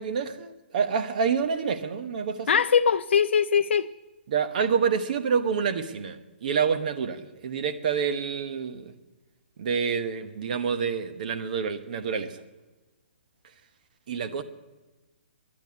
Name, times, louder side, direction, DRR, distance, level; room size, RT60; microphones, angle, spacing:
voice 1, 0.0-2.6 4.3-8.9 9.6-12.4 14.1-14.4, right 6 dB, 45° right, 1.0 m, -28 dB
voice 2, 2.5-3.9, left 7 dB, 80° left, 0.4 m, -21 dB
10.5 x 10.5 x 9.4 m
hypercardioid pair, 170°, 6 cm